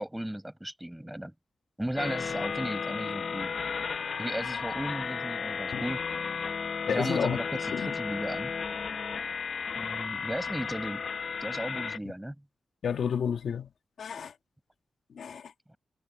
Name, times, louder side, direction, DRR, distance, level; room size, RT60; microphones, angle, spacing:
voice 1, 0.0-1.3 1.8-3.5 4.2-6.1 6.9-8.5 9.8-11.0 11.4-12.4 15.7-15.8, right 1 dB, 5° right, 6.2 m, -35 dB
sound 1, 2.0-12.0, left 5 dB, 60° left, 0.9 m, -34 dB
voice 2, 6.9-7.4 7.7-7.9 12.8-13.7 14.0-14.3 15.1-15.5, left 7 dB, 80° left, 2.1 m, -30 dB
wide cardioid pair, 90°, 0 cm